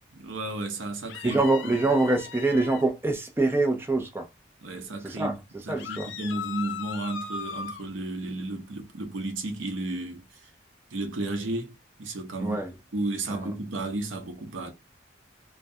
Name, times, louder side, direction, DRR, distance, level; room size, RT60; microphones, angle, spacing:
voice 1, 0.1-1.7 4.6-5.4 5.7-10.2 10.9-11.7 12.0-12.6 12.9-14.7, right 2 dB, 75° right, 0.6 m, -33 dB
sound 1, 1.1-2.9 5.8-7.8, left 7 dB, 65° left, 0.3 m, -38 dB
voice 2, 1.2-4.3 5.0-5.4 5.7-6.1 12.4-12.7 13.3-13.5, right 2 dB, 10° right, 0.4 m, -25 dB
2.3 x 2.1 x 2.6 m
head